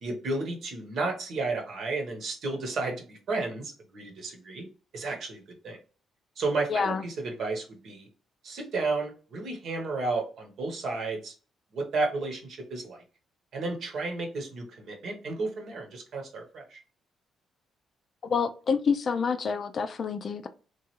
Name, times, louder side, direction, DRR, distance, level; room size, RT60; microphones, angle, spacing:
voice 1, 0.0-4.7 4.9-5.8 6.4-8.1 8.4-11.3 11.7-13.0 13.5-16.8, right 3 dB, 65° right, 1.0 m, -32 dB
voice 2, 6.7-7.0 18.2-20.5, left 5 dB, 50° left, 0.3 m, -28 dB
3.0 x 2.3 x 3.0 m
cardioid pair, 90°, 0 cm